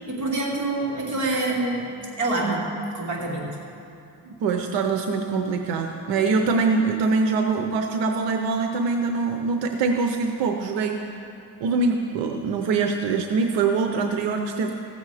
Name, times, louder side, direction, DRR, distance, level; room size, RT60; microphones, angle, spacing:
voice 1, 0.1-2.7 2.9-3.6, right 2 dB, 45° right, -3 dB, 2.7 m, -26 dB
voice 2, 4.2-11.0 11.6-14.7, right 4 dB, 90° right, 5 dB, 0.8 m, -23 dB
16.0 x 7.2 x 4.8 m, 2.7 s
cardioid pair, 105°, 42 cm